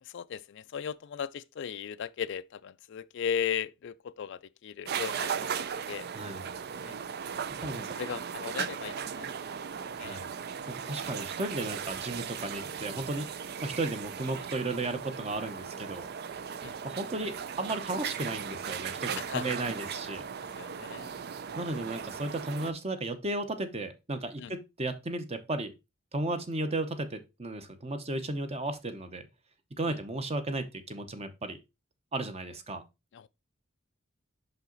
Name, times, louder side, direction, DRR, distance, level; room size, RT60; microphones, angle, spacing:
voice 1, 0.0-6.1 6.8-7.0 7.7-9.5 9.8-10.2 16.6-16.7 19.2-19.5 20.6-21.1 24.4-24.5 29.9-30.0 33.1-33.3, left 8 dB, 60° left, 0.4 m, -37 dB
sound 1, 4.9-22.7, right 7 dB, 50° right, 0.4 m, -37 dB
voice 2, 6.1-6.5 7.6-7.8 10.0-10.3 10.7-13.3 13.6-16.1 16.8-20.2 21.6-25.7 26.1-29.2 29.8-31.6 32.1-32.8, right 2 dB, 30° right, 0.9 m, -34 dB
5.8 x 5.6 x 3.9 m
head